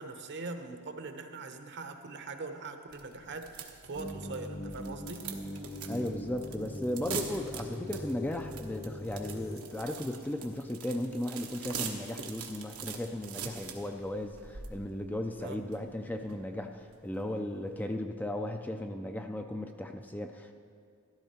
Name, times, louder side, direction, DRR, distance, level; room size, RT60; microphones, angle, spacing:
voice 1, 0.0-5.2 15.4-15.7, right 3 dB, 55° right, 6 dB, 0.9 m, -42 dB
sound 1, 2.9-17.8, right 6 dB, 85° right, 1.2 m, -44 dB
sound 2, 3.9-9.6, left 1 dB, 45° left, 1.2 m, -41 dB
voice 2, 5.9-20.5, left 1 dB, 10° left, 5 dB, 0.4 m, -36 dB
13.5 x 12.0 x 4.3 m, 2.2 s
head